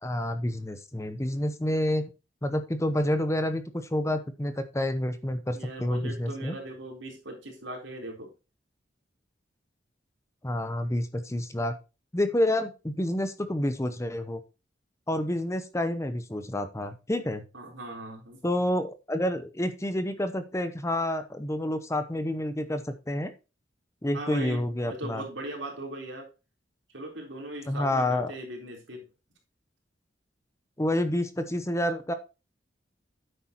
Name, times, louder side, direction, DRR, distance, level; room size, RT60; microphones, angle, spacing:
voice 1, 0.0-2.1 2.4-3.6 3.9-6.6 10.4-11.7 12.1-14.4 15.1-17.4 18.4-23.3 24.0-25.2 27.7-28.3 30.8-32.1, left 1 dB, 15° left, 10 dB, 0.7 m, -28 dB
voice 2, 5.5-8.3 17.5-18.4 24.1-26.3 26.9-29.1, right 1 dB, 85° right, 1 dB, 3.9 m, -39 dB
9.9 x 8.0 x 3.0 m, 0.29 s
head